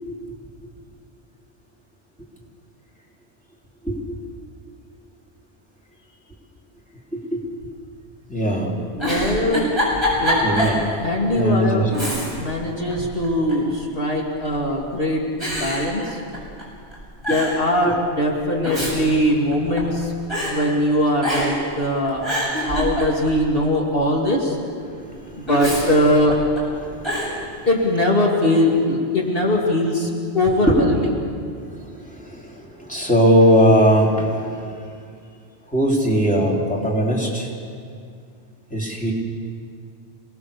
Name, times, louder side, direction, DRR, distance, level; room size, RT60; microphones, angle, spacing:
voice 1, 3.8-4.2 7.1-7.4 8.3-8.8 10.4-11.9 12.5-12.8 17.3-17.4 17.8-17.9 24.9-25.5 26.8-27.7 30.6-30.8 31.5-34.8 35.7-37.5 38.7-39.1, equal, 5° left, -3 dB, 3.9 m, -21 dB
voice 2, 8.9-9.7 10.2-10.4 11.0-11.9 12.4-16.2 17.3-20.1 20.5-24.6 25.4-26.3 27.7-31.1, left 1 dB, 55° left, -2 dB, 2.8 m, -21 dB
Giggle, 8.9-10.8 11.2-11.3 11.9-12.6 12.9-13.7 14.5-14.9 15.4-16.6 16.9-17.0 17.2-17.6 18.4-20.0 20.3-20.5 21.2-21.7 22.0-23.4 25.5-26.6 27.0-27.3, equal, 25° left, 8.1 m, -25 dB
29.0 x 19.5 x 7.0 m, 2.3 s
omnidirectional pair, 1.2 m